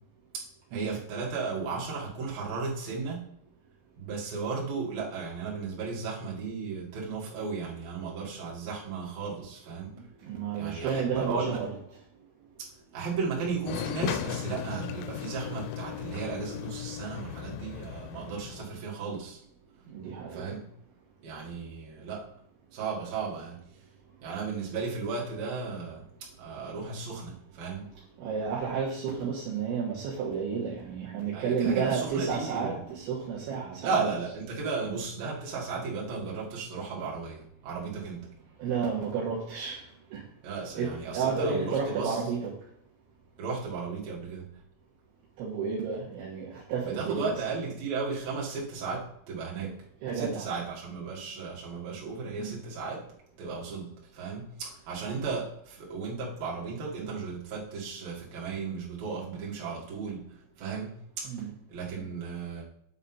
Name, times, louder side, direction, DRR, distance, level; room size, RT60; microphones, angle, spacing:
voice 1, 0.7-3.3 4.0-10.0 10.6-11.6 12.9-19.4 20.3-20.7 21.2-22.2 22.7-23.6 24.2-26.0 26.4-27.9 31.3-32.8 33.8-38.3 40.4-42.2 43.4-44.5 46.8-49.8 50.1-53.0 53.4-53.9 54.1-60.2 60.6-61.3 61.7-62.6, right 4 dB, 55° right, -5 dB, 3.4 m, -35 dB
voice 2, 10.0-11.7 19.9-20.6 28.2-34.0 38.6-39.8 40.1-40.2 40.8-42.6 45.4-47.4 49.6-49.7 50.0-50.5 52.1-52.6 61.3-61.5, right 6 dB, 75° right, -5 dB, 3.4 m, -31 dB
sound 1, 13.7-18.7, left 11 dB, 85° left, 2.7 m, -36 dB
9.2 x 4.1 x 5.6 m, 0.70 s
omnidirectional pair, 5.9 m